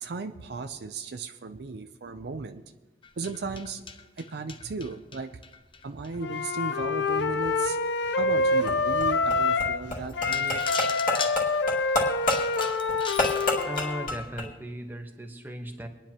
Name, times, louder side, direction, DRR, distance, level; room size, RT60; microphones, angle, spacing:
voice 1, 0.0-2.6 3.2-3.9 4.2-5.4 5.8-7.8 8.1-10.7, right 4 dB, 65° right, 9 dB, 0.5 m, -35 dB
sound 1, 3.0-6.5 7.1-7.2 7.7-7.8 8.3-8.4 9.6-9.7 10.1-13.9, left 6 dB, 30° left, 0.7 m, -38 dB
Wind instrument woodwind instrument, 6.2-9.8 10.1-14.1, left 3 dB, 75° left, 0.7 m, -26 dB
sound 2, 8.5-14.5, left 2 dB, 50° left, 2.2 m, -30 dB
voice 2, 13.6-15.9, right 1 dB, 10° right, 3 dB, 1.2 m, -37 dB
24.5 x 10.0 x 2.9 m, 1.2 s
head